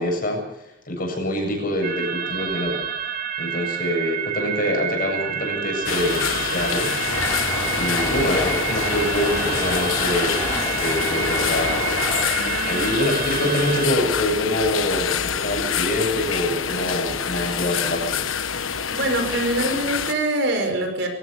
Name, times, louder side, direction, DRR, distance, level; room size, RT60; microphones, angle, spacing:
voice 1, 0.0-2.8 3.4-6.9 7.7-10.5 10.8-11.9 12.6-18.2, left 1 dB, 45° left, 2 dB, 7.8 m, -25 dB
sound 1, 1.8-13.9, right 8 dB, 45° right, 2.5 m, -29 dB
sound 2, 5.9-20.1, left 7 dB, 85° left, 1.3 m, -26 dB
sound 3, 6.1-14.1, left 1 dB, 10° left, 4.5 m, -31 dB
voice 2, 12.3-12.7 18.9-21.1, right 1 dB, 60° right, 5 dB, 5.8 m, -24 dB
24.5 x 16.5 x 6.9 m, 0.79 s
head